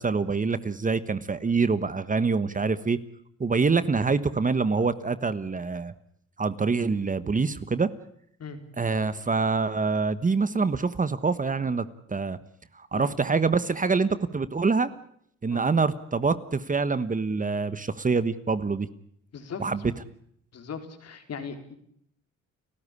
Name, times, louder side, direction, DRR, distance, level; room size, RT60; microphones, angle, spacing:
voice 1, 0.0-3.0 3.4-5.9 6.4-7.9 8.8-12.4 12.7-14.9 15.4-18.9 19.6-19.8, right 4 dB, 25° right, 14 dB, 1.3 m, -25 dB
voice 2, 19.3-19.7 20.5-21.7, left 6 dB, 55° left, 7 dB, 4.3 m, -38 dB
30.0 x 14.5 x 9.8 m, 0.70 s
cardioid pair, 90°, 30 cm